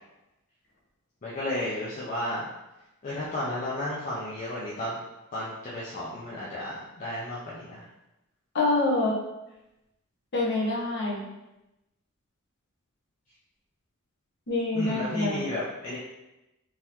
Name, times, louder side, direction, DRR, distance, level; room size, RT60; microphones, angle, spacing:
voice 1, 1.2-2.5 3.0-5.0 5.3-7.8 14.7-16.0, left 1 dB, 35° left, -8 dB, 0.6 m, -33 dB
voice 2, 8.5-9.1 10.3-11.3 14.5-15.4, left 2 dB, 50° left, -5 dB, 1.1 m, -26 dB
3.8 x 3.0 x 2.7 m, 0.96 s
head